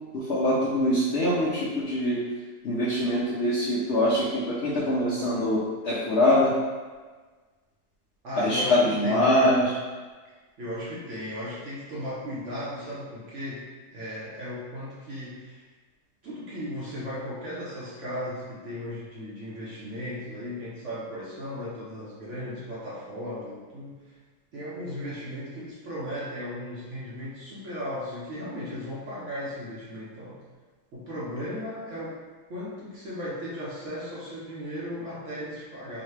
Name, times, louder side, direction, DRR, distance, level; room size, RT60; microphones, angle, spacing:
voice 1, 0.1-2.2 2.6-6.5 8.4-9.8, left 1 dB, 60° left, -8 dB, 0.7 m, -23 dB
voice 2, 8.2-9.7 10.6-15.6 16.2-24.0 24.5-30.4 30.9-32.2 32.5-36.0, left 1 dB, 55° right, -8 dB, 0.9 m, -36 dB
3.9 x 2.2 x 3.2 m, 1.4 s
omnidirectional pair, 1.8 m